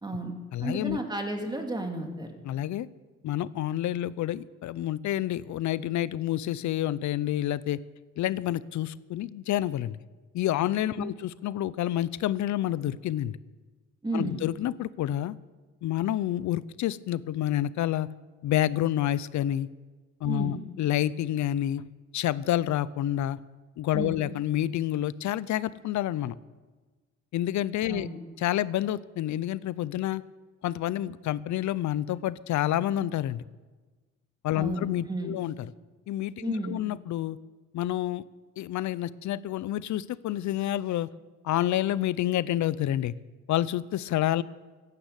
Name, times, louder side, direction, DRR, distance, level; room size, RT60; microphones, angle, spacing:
voice 1, 0.0-0.3 0.6-2.3 11.0-11.1 14.0-14.4 20.3-20.6 23.9-24.2 27.9-28.2 34.5-35.4 36.4-36.8, right 1 dB, 15° right, 3 dB, 2.6 m, -32 dB
voice 2, 0.5-1.0 2.4-2.9 3.2-7.8 8.2-10.0 10.3-13.4 14.1-15.3 15.8-18.1 18.4-19.7 20.2-21.8 22.1-23.4 23.8-26.3 27.3-28.1 28.4-30.2 30.6-33.4 34.4-35.7 36.1-37.4 37.7-38.2 38.6-41.1 41.4-43.1 43.5-44.4, left 13 dB, 70° left, 19 dB, 0.6 m, -28 dB
14.5 x 10.0 x 8.2 m, 1.3 s
cardioid pair, 90°, 30 cm